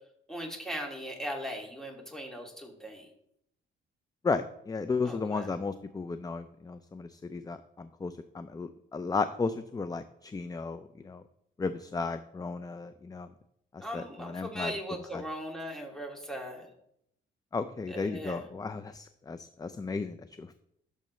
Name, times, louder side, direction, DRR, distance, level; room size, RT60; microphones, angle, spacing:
voice 1, 0.3-3.1 5.0-5.5 13.8-16.7 17.9-18.4, equal, 5° left, 1 dB, 2.3 m, -39 dB
voice 2, 4.2-11.2 11.6-13.3 13.7-14.7 15.1-15.2 17.5-20.5, left 4 dB, 20° left, 11 dB, 0.5 m, -34 dB
12.5 x 6.7 x 3.2 m, 0.75 s
cardioid pair, 90°, 20 cm